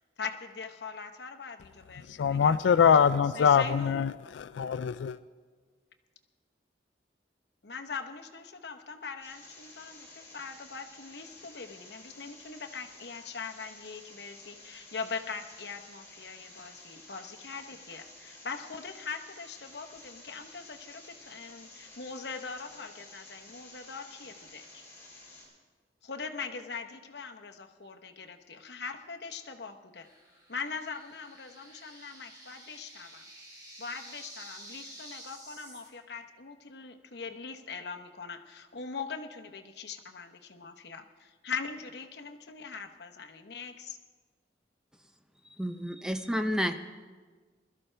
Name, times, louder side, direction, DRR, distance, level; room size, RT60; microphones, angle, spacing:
voice 1, 0.0-2.6 3.3-4.0 7.6-24.8 26.0-30.1 30.5-33.3 33.8-44.0, left 5 dB, 65° left, 1.0 m, -41 dB
voice 2, 2.1-5.2, left 7 dB, 85° left, 0.3 m, -24 dB
sound 1, 9.2-25.5, left 2 dB, 15° left, 4.4 m, -52 dB
sound 2, 30.0-35.9, right 1 dB, 20° right, 3.0 m, -50 dB
voice 3, 45.6-46.7, equal, 5° right, 0.5 m, -30 dB
21.5 x 13.0 x 3.3 m
head